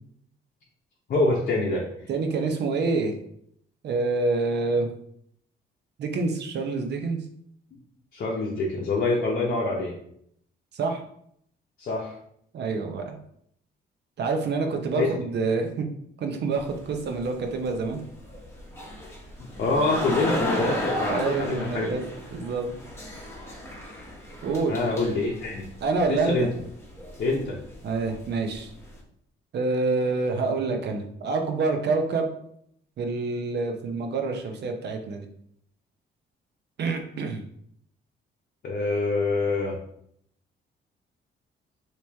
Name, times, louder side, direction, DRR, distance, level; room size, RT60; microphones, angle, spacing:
voice 1, 1.1-1.8 8.1-9.9 11.8-12.1 14.9-15.1 19.6-21.9 24.7-25.6 26.1-26.5 27.2-27.6 38.6-39.8, left 3 dB, 50° left, -2 dB, 0.7 m, -25 dB
voice 2, 2.1-3.1 3.8-4.9 6.0-7.3 10.7-11.0 12.5-13.2 14.2-15.9 16.2-18.0 21.1-22.0 22.3-22.7 24.4-24.7 25.8-26.5 27.8-28.7 29.5-32.3 33.0-35.3 36.8-37.4, right 3 dB, 60° right, 5 dB, 0.7 m, -27 dB
sound 1, 16.5-29.0, equal, 15° left, 1.1 m, -35 dB
3.0 x 2.9 x 3.4 m, 0.69 s
cardioid pair, 90°, 20 cm